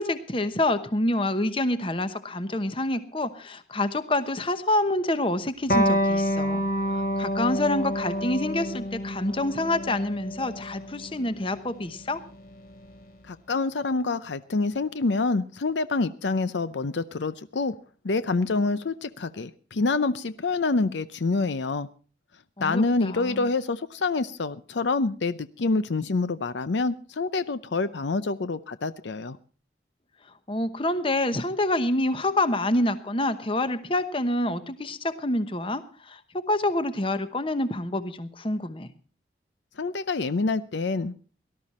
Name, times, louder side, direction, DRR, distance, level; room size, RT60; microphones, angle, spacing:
voice 1, 0.0-12.2 22.6-23.5 30.5-38.9, left 1 dB, 30° left, 11 dB, 1.0 m, -27 dB
Electric guitar, 5.7-12.8, equal, 50° left, 2.4 m, -28 dB
voice 2, 13.3-17.7 18.0-21.9 22.6-29.4 39.8-41.1, left 3 dB, 75° left, 14 dB, 0.6 m, -27 dB
18.5 x 12.5 x 4.2 m, 0.39 s
head